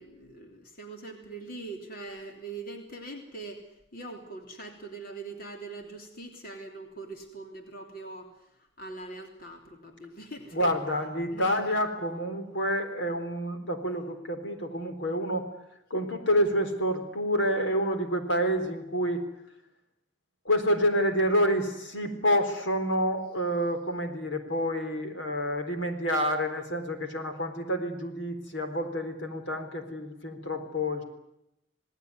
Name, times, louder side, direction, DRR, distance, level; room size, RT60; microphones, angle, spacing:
voice 1, 0.0-3.6 3.9-8.3 8.8-10.7 11.3-11.8, right 3 dB, 45° left, 3 dB, 3.4 m, -42 dB
voice 2, 10.5-15.5 15.9-19.2 20.4-31.0, equal, 70° left, 6 dB, 3.9 m, -28 dB
28.0 x 19.0 x 9.7 m, 0.83 s
head